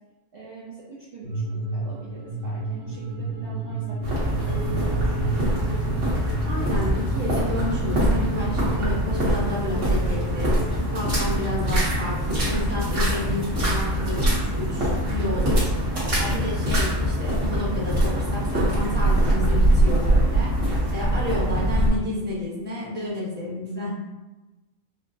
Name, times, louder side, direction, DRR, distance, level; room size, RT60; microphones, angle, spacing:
voice 1, 0.3-5.5, right 4 dB, 55° right, -7 dB, 0.8 m, -44 dB
sound 1, 1.2-11.0, right 3 dB, 80° left, 1.3 m, -31 dB
sound 2, 4.0-21.9, right 1 dB, 80° right, 1.5 m, -23 dB
sound 3, 4.5-9.0, right 9 dB, 50° left, 0.9 m, -43 dB
voice 2, 6.5-10.5 10.9-15.7 16.1-20.5 20.9-24.0, left 1 dB, 10° right, -8 dB, 0.9 m, -31 dB
4.4 x 2.1 x 2.6 m, 1.1 s
omnidirectional pair, 1.2 m